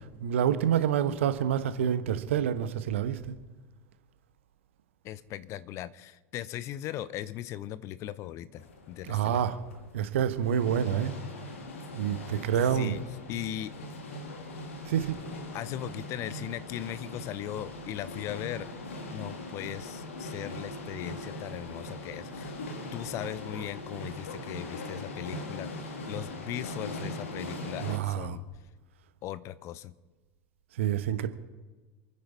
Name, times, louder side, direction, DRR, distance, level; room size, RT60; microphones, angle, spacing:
voice 1, 0.2-3.3 9.0-9.6 9.9-11.1 12.0-13.0 14.8-15.2 27.8-28.4 30.8-31.3, right 9 dB, 65° right, 1.2 m, -27 dB
voice 2, 5.0-9.4 12.7-13.0 13.3-13.7 15.5-18.7 19.1-22.6 22.9-25.7 26.1-28.4 29.2-29.9, left 12 dB, 40° left, 0.8 m, -38 dB
sound 1, 8.6-28.0, left 1 dB, 70° left, 2.1 m, -40 dB
28.0 x 10.0 x 4.1 m
figure-of-eight pair, 80°, 7 cm